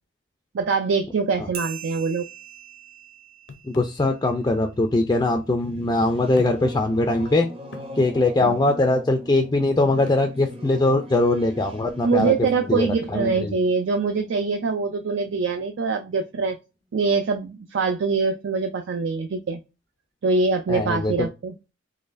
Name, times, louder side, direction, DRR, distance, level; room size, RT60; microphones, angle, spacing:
voice 1, 0.5-2.3 8.4-8.5 12.0-16.6 16.9-19.6 20.2-21.5, right 4 dB, 70° right, 5 dB, 0.4 m, -24 dB
sound 1, 1.5-4.6, right 7 dB, 50° right, 1.0 m, -41 dB
sound 2, 3.5-4.0 5.1-5.2 6.3-6.8 7.2-7.3 7.7-8.0 10.1-10.3 12.2-12.5, left 4 dB, 65° left, 0.6 m, -41 dB
voice 2, 3.6-7.5 8.0-12.3 12.7-13.6 20.7-21.1, left 2 dB, 20° left, 3 dB, 0.4 m, -21 dB
Singing / Musical instrument, 5.4-15.5, equal, 30° right, 0.7 m, -40 dB
3.9 x 3.1 x 2.5 m, 0.27 s
head